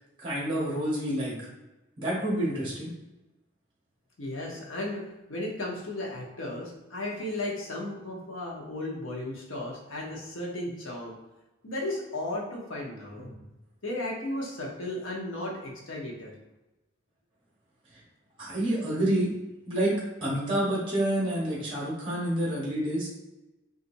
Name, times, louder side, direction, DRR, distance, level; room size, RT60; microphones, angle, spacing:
voice 1, 0.2-1.5 2.0-2.9 13.2-13.4 18.4-19.3 19.7-23.1, right 1 dB, 25° right, -5 dB, 1.0 m, -28 dB
voice 2, 4.2-11.1 11.6-13.3 13.8-16.3, left 1 dB, 80° left, -2 dB, 0.8 m, -35 dB
4.0 x 2.5 x 2.6 m, 1.0 s
head